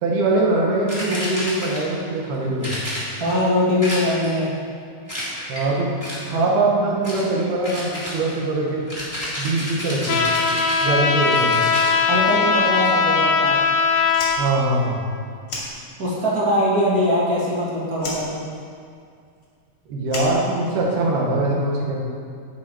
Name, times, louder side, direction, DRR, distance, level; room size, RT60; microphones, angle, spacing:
voice 1, 0.0-2.7 5.5-5.9 6.3-8.8 9.4-10.2 10.8-11.6 14.4-15.0 19.9-22.1, right 2 dB, 80° right, -3 dB, 3.7 m, -22 dB
sound 1, 0.9-2.0 2.6-3.4 3.8-4.4 5.1-5.7 6.0-6.4 7.0-7.3 7.6-12.0, equal, 5° right, 2.5 m, -31 dB
voice 2, 3.2-4.5 12.1-13.6 16.0-18.4, left 1 dB, 30° right, -6 dB, 1.8 m, -21 dB
Trumpet, 10.1-14.4, left 5 dB, 80° left, 1.5 m, -19 dB
Fire, 14.1-16.3 16.6-17.6 17.9-21.1, left 2 dB, 40° left, 2.9 m, -34 dB
10.5 x 8.8 x 4.8 m, 2.3 s
omnidirectional pair, 4.4 m